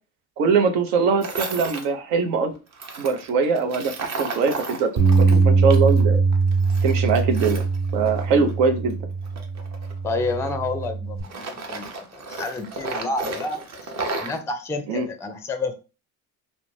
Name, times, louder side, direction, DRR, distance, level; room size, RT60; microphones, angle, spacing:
voice 1, 0.4-2.5 3.0-4.9 5.3-6.2 6.8-7.6 7.9-9.0 14.9-15.1, right 5 dB, 80° right, 0.6 m, -22 dB
Tools, 1.2-1.9 2.7-6.0 6.3-8.6 9.2-10.9 11.2-14.4, right 3 dB, 40° right, 0.7 m, -33 dB
Bass guitar, 5.0-11.2, right 4 dB, 55° right, 1.0 m, -21 dB
voice 2, 10.0-13.6 14.2-15.7, left 3 dB, 5° left, 0.4 m, -29 dB
2.4 x 2.0 x 3.1 m
hypercardioid pair, 60°, 43 cm